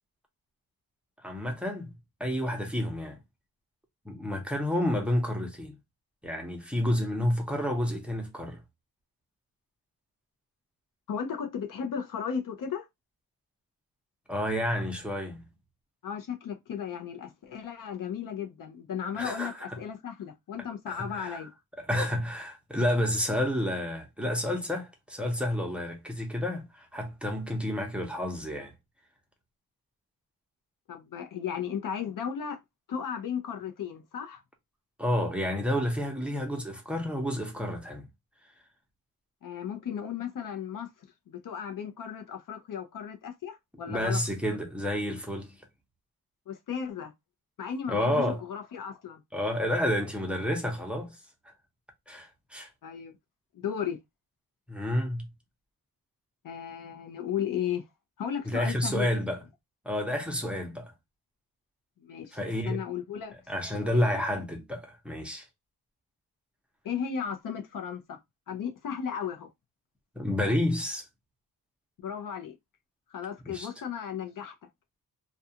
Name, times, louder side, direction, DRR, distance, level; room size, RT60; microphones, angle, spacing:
voice 1, 1.2-1.9 2.2-3.2 4.1-5.8 6.2-8.6 14.3-15.4 19.1-19.8 20.9-21.4 21.9-28.7 35.0-38.1 43.9-45.5 47.9-48.4 49.3-51.2 52.1-52.7 54.7-55.3 58.5-59.4 59.8-60.9 62.3-62.8 63.5-65.4 70.2-71.1 73.4-73.7, left 1 dB, 5° right, 0.7 m, -30 dB
voice 2, 11.1-12.8 16.0-21.5 30.9-32.6 32.9-34.4 39.4-40.9 41.3-44.2 46.5-47.1 47.6-49.2 52.8-53.2 53.5-54.0 56.4-57.8 58.2-59.2 62.0-63.3 63.8-64.2 66.8-68.2 68.5-69.5 72.0-72.5 73.1-74.5, left 8 dB, 60° left, 0.6 m, -35 dB
2.3 x 2.3 x 2.7 m
cardioid pair, 90°, 36 cm